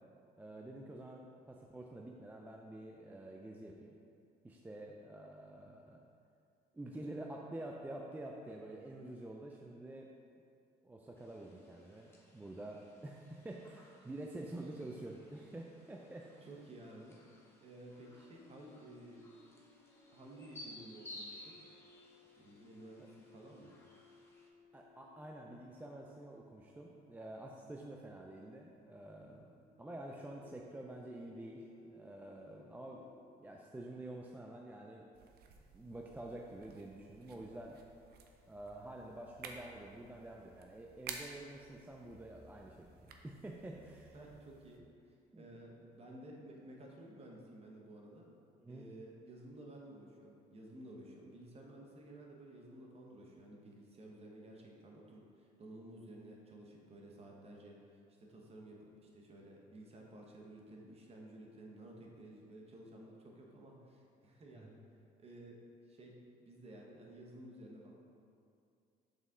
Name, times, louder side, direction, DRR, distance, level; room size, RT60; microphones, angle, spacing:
voice 1, 0.4-3.9 4.4-6.0 6.7-10.2 10.8-16.5 23.0-23.1 24.7-35.1 35.7-37.8 38.5-44.2 45.3-45.5 48.6-48.9 64.5-64.8, right 1 dB, 10° right, 0 dB, 0.4 m, -48 dB
sound 1, 11.2-24.5, left 1 dB, 15° left, 0.9 m, -58 dB
voice 2, 16.5-17.2 17.6-19.3 20.1-21.6 22.4-23.7 44.1-48.3 48.7-64.8 65.2-65.6 65.9-66.1 66.4-67.9, right 1 dB, 35° right, -1 dB, 1.1 m, -54 dB
sound 2, 17.9-33.2, left 4 dB, 60° left, 0.6 m, -64 dB
sound 3, 35.1-44.8, right 5 dB, 70° right, 0.6 m, -54 dB
6.5 x 4.1 x 3.7 m, 2.4 s
cardioid pair, 110°, 17 cm